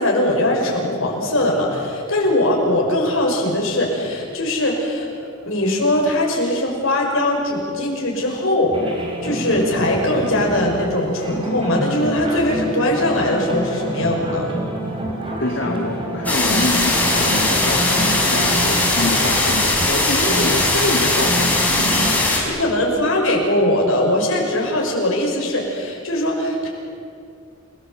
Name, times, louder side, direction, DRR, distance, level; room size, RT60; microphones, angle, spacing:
voice 1, 0.0-5.1 5.5-8.9 9.2-14.5 22.4-26.7, left 1 dB, 70° left, 0 dB, 6.0 m, -20 dB
sound 1, 8.7-22.1, right 1 dB, 25° right, 4.5 m, -27 dB
voice 2, 15.4-21.8 22.8-22.9, left 2 dB, 55° left, 0 dB, 2.0 m, -26 dB
sound 2, 16.3-22.4, left 2 dB, 5° left, 4.7 m, -19 dB
29.5 x 19.0 x 7.8 m, 2.4 s
head